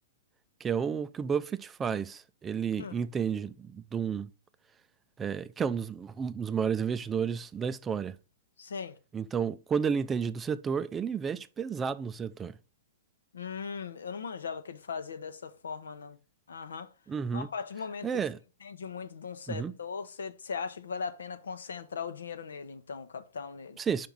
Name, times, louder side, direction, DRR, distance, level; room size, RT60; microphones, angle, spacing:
voice 1, 0.6-4.3 5.2-8.2 9.1-12.6 17.1-17.5 18.0-18.4 19.5-19.7 23.8-24.1, right 6 dB, 20° right, 0.4 m, -31 dB
voice 2, 8.6-9.0 13.3-16.2 16.5-16.9 17.3-18.1 18.6-23.8, left 6 dB, 80° left, 0.7 m, -39 dB
5.1 x 4.5 x 5.2 m
hypercardioid pair, 120°, 0 cm